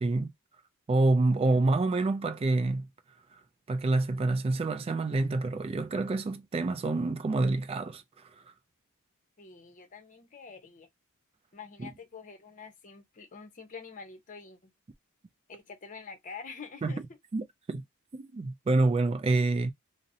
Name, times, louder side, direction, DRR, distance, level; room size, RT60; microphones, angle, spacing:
voice 1, 0.0-0.3 0.9-2.9 3.7-8.0 11.8-11.9 16.8-16.9 17.3-17.8 18.1-19.7, right 2 dB, 25° right, 0.3 m, -27 dB
voice 2, 9.4-10.9 11.5-14.7 15.5-17.0, left 5 dB, 40° left, 0.7 m, -46 dB
2.8 x 2.0 x 2.6 m
head